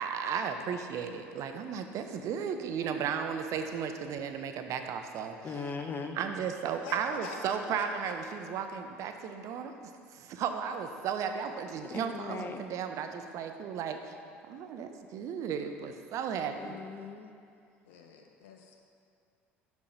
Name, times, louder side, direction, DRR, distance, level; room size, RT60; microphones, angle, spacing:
voice 1, 0.0-5.4 6.2-9.7 10.1-14.0 14.5-16.8, right 7 dB, 55° right, 7 dB, 0.6 m, -35 dB
voice 2, 5.4-6.2 11.8-12.6 16.6-17.3, left 4 dB, 30° left, 6 dB, 0.7 m, -39 dB
voice 3, 6.8-8.1 17.9-18.7, left 5 dB, 75° left, 2 dB, 0.7 m, -45 dB
6.2 x 5.6 x 5.1 m, 2.4 s
hypercardioid pair, 65°, 6 cm